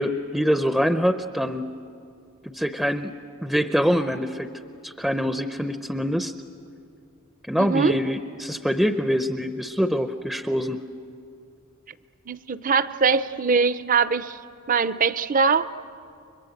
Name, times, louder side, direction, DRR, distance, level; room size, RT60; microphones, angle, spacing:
voice 1, 0.0-1.7 2.4-3.1 3.4-4.5 4.8-6.3 7.5-10.8, equal, ahead, 9 dB, 0.6 m, -24 dB
voice 2, 7.6-7.9 12.3-14.4 14.7-15.7, right 5 dB, 40° right, 14 dB, 0.6 m, -22 dB
30.0 x 23.5 x 7.9 m, 2.4 s
head